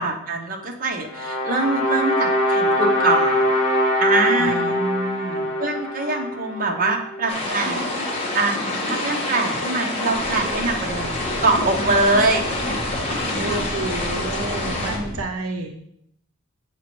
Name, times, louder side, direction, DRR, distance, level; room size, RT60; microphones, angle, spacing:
voice 1, 0.0-3.5 4.0-4.8 5.6-8.6 8.9-12.5 13.5-13.6, right 3 dB, 40° right, 2 dB, 0.9 m, -23 dB
sound 1, 1.1-7.3, left 1 dB, 60° left, 2.3 m, -22 dB
voice 2, 4.4-5.5 13.4-15.8, right 2 dB, 75° right, 5 dB, 0.7 m, -30 dB
sound 2, 7.3-15.0, left 2 dB, 25° left, 1.3 m, -27 dB
sound 3, 10.1-15.2, equal, ahead, 1.7 m, -34 dB
7.2 x 5.1 x 3.1 m, 0.70 s
head